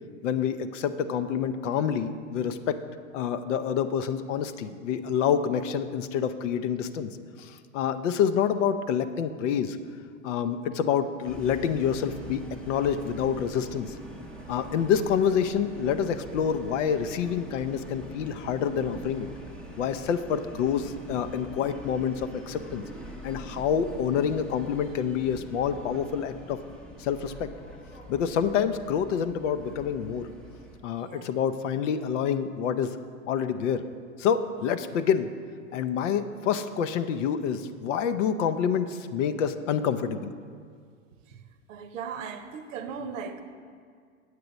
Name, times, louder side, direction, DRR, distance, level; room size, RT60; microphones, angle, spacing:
voice 1, 0.2-2.8 3.1-7.1 7.4-9.8 10.2-13.9 14.5-19.3 19.8-22.8 23.2-26.6 27.0-27.5 28.1-30.3 30.8-33.0 33.3-33.8 34.2-35.3 35.7-40.3, left 8 dB, 60° left, 10 dB, 0.6 m, -27 dB
sound 1, 11.2-30.8, right 1 dB, ahead, 0.7 m, -44 dB
voice 2, 31.0-31.3 41.3-41.4 41.7-43.4, right 6 dB, 65° right, 9 dB, 0.8 m, -38 dB
8.2 x 7.6 x 4.0 m, 2.1 s
hypercardioid pair, 105°, 41 cm